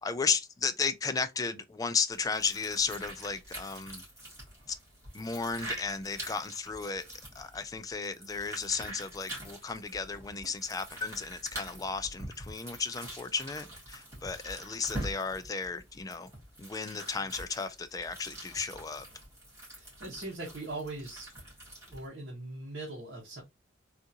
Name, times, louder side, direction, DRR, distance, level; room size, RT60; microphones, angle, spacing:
voice 1, 0.0-4.0 4.7-4.8 5.1-7.0 7.3-16.3 16.6-19.0, left 5 dB, 20° left, 0.3 m, -34 dB
sound 1, 2.1-22.1, right 1 dB, 15° right, 1.8 m, -45 dB
voice 2, 19.7-21.3 21.9-23.4, right 2 dB, 60° right, 1.0 m, -41 dB
3.6 x 2.5 x 2.7 m
head